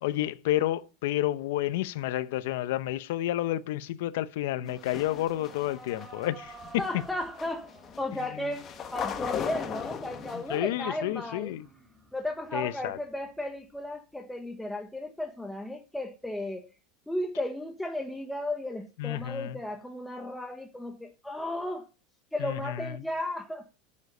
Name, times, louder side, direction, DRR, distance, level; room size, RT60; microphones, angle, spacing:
voice 1, 0.0-7.0 8.4-8.5 10.3-11.7 12.5-13.0 19.0-19.6 22.4-23.0, left 14 dB, 75° left, 0.7 m, -30 dB
sound 1, 4.5-13.9, right 3 dB, 15° right, 5.5 m, -52 dB
sound 2, 4.7-10.6, left 8 dB, 35° left, 1.4 m, -38 dB
voice 2, 6.8-7.7 8.0-11.5 12.1-16.7 17.1-21.9 22.3-23.7, left 1 dB, 5° left, 1.1 m, -35 dB
10.5 x 7.4 x 6.6 m
supercardioid pair, 125°, 0 cm